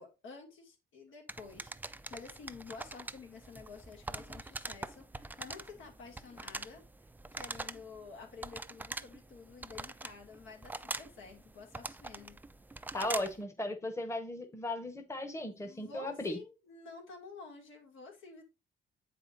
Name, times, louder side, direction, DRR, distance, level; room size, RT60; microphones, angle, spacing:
voice 1, 0.0-12.4 15.5-18.4, left 4 dB, 80° left, 2.4 m, -51 dB
Telephone Buttons, 1.3-13.4, right 2 dB, 10° right, 0.4 m, -44 dB
voice 2, 12.9-16.4, left 1 dB, 15° left, 1.0 m, -36 dB
8.0 x 5.0 x 2.6 m
cardioid pair, 90°, 20 cm